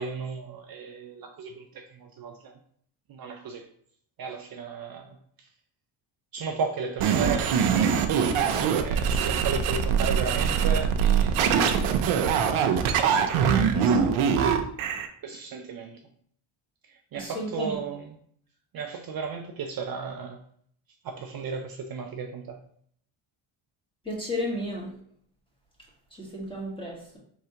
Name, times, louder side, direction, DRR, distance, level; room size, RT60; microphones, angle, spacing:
voice 1, 0.0-2.5 3.1-3.7 4.2-5.5 6.3-7.5 8.7-11.4 13.0-14.5 15.2-16.0 17.1-18.0 18.7-20.4 21.0-22.6, right 5 dB, 50° right, 3 dB, 0.6 m, -34 dB
sound 1, 7.0-15.1, right 7 dB, 85° right, 0.7 m, -23 dB
voice 2, 17.1-17.8 24.0-24.9 26.1-27.2, left 1 dB, 10° left, -4 dB, 1.7 m, -33 dB
4.7 x 3.2 x 2.9 m, 0.63 s
cardioid pair, 100°, 48 cm